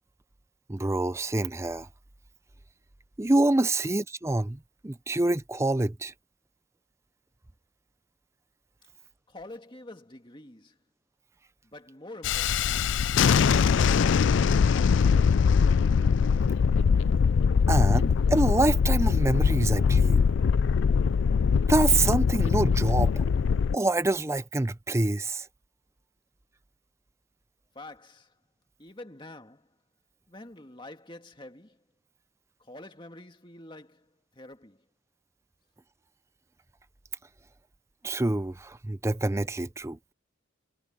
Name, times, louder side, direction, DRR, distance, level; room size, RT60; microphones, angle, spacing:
voice 1, 0.7-1.9 3.2-4.6 4.8-6.1 17.7-20.2 21.7-23.3 23.7-25.5 38.0-40.0, right 2 dB, 15° right, 0.5 m, -26 dB
voice 2, 9.0-10.8 11.6-13.0 27.7-28.4 28.8-29.8 30.3-31.9 32.6-34.9, left 1 dB, 25° left, 2.2 m, -47 dB
Thunderstorm, 12.2-23.8, left 6 dB, 60° left, 0.3 m, -22 dB
head